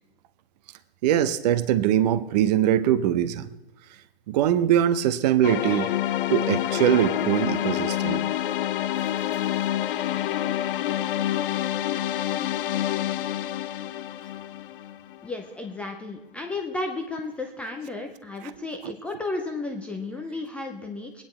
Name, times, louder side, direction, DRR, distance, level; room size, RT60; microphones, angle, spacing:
voice 1, 1.0-3.5 4.3-5.9 6.3-8.2 18.8-18.9, right 11 dB, 40° right, 13 dB, 0.8 m, -22 dB
sound 1, 5.4-15.4, left 12 dB, 50° left, 0.6 m, -27 dB
voice 2, 15.2-21.2, left 2 dB, 5° left, 2 dB, 0.4 m, -33 dB
22.5 x 9.8 x 4.4 m, 0.98 s
hypercardioid pair, 135°, 34 cm